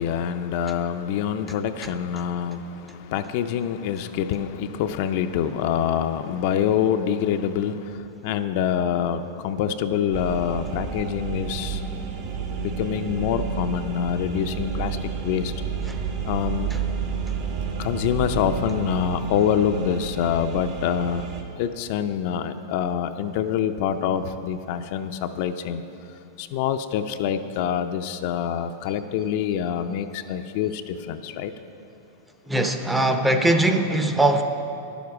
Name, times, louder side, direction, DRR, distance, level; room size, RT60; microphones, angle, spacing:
voice 1, 0.0-11.8 12.6-15.5 16.3-16.7 17.8-21.2 21.6-25.8 26.4-31.5, left 9 dB, 55° left, 8 dB, 0.4 m, -26 dB
sound 1, 10.1-21.4, right 5 dB, 50° right, 1.1 m, -30 dB
voice 2, 32.5-34.4, right 1 dB, 5° right, 6 dB, 0.6 m, -20 dB
10.5 x 7.2 x 4.7 m, 2.8 s
hypercardioid pair, 135°, 0 cm